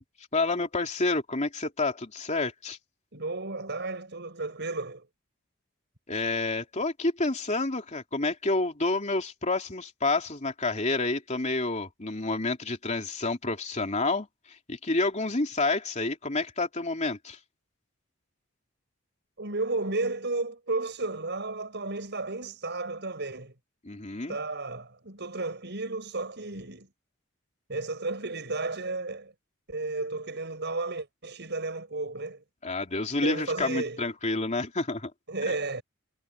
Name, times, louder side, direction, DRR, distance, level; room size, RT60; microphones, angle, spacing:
voice 1, 0.3-2.8 6.1-17.4 23.8-24.4 32.6-35.1, left 3 dB, 35° left, 3.2 m, -29 dB
voice 2, 3.1-5.1 19.4-23.5 24.3-26.9 27.7-29.3 29.7-32.4 33.2-34.0 35.3-35.8, right 3 dB, 55° right, 7.5 m, -33 dB
head